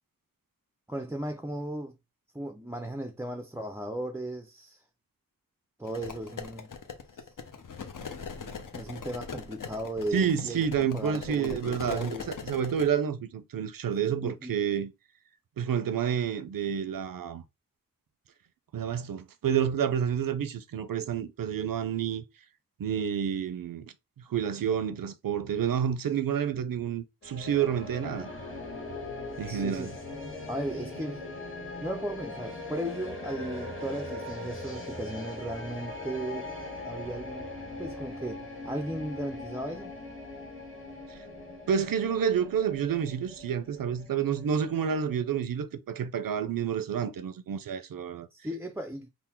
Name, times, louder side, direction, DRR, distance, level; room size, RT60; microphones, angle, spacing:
voice 1, 0.9-2.0 2.3-4.8 5.8-6.7 7.1-7.3 8.7-12.3 14.2-14.6 29.4-29.9 30.5-31.2 31.8-36.5 36.8-37.5 37.8-39.9 48.3-49.1, right 1 dB, 10° right, 0.4 m, -36 dB
sound 1, 5.8-12.9, left 5 dB, 60° left, 0.7 m, -41 dB
voice 2, 10.1-14.9 15.6-17.4 18.7-22.2 22.8-23.9 24.3-28.3 29.4-29.9 41.1-41.2 41.7-48.3, right 8 dB, 70° right, 0.5 m, -29 dB
sound 2, 27.2-45.4, left 2 dB, 35° left, 1.7 m, -40 dB
3.8 x 2.0 x 4.3 m
wide cardioid pair, 75°, 35 cm